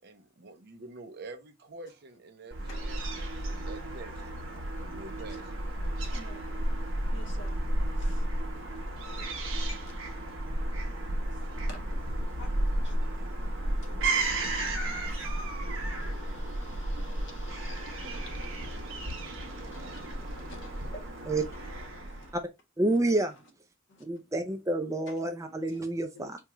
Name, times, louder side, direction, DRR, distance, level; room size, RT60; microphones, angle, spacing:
voice 1, 0.0-4.1 4.8-5.5, right 2 dB, 55° right, 0.7 m, -47 dB
Fowl / Gull seagull, 2.5-22.4, right 1 dB, 80° right, 0.9 m, -33 dB
voice 2, 2.6-3.0 6.0-7.6 8.0-8.3 8.7-10.4 11.0-12.0 12.4-13.0 13.6-22.3 22.9-23.0 23.9-24.0 25.1-25.2 25.5-25.8 26.1-26.3, left 1 dB, 60° left, 1.2 m, -53 dB
voice 3, 22.8-23.3 24.0-26.4, right 2 dB, 15° right, 0.4 m, -28 dB
4.5 x 2.3 x 2.9 m
head